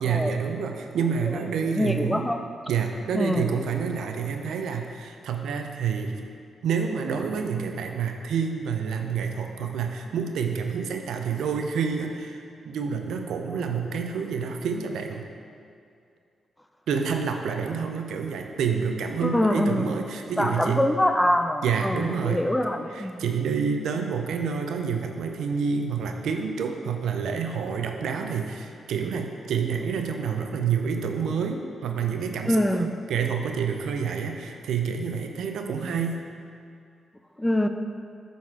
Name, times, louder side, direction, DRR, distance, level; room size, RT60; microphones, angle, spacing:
voice 1, 0.0-2.3 2.7-6.2 6.6-15.3 16.9-20.9 21.6-22.4 22.9-36.3, right 6 dB, 85° right, 4 dB, 0.5 m, -28 dB
voice 2, 1.7-2.4 3.1-3.5 19.2-19.9 20.4-23.3 32.4-32.9 37.4-37.7, left 1 dB, 10° left, 7 dB, 0.4 m, -24 dB
7.6 x 4.1 x 4.7 m, 2.3 s
cardioid pair, 70°, 0 cm